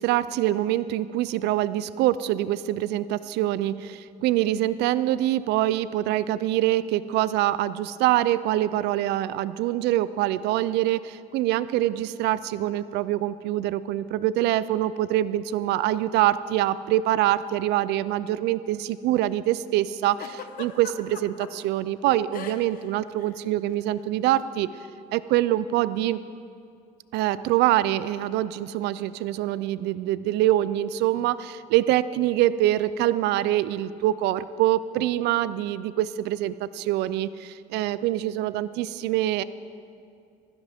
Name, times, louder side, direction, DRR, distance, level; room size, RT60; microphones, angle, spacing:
voice 1, 0.0-24.7 25.1-26.2 27.1-39.4, right 14 dB, 85° right, 16 dB, 0.4 m, -25 dB
Giggle, 20.2-21.5 22.3-22.8 23.1-23.3 24.2-24.5, left 8 dB, 55° left, 1.0 m, -39 dB
16.0 x 13.5 x 3.5 m, 2.4 s
cardioid pair, 110°, 17 cm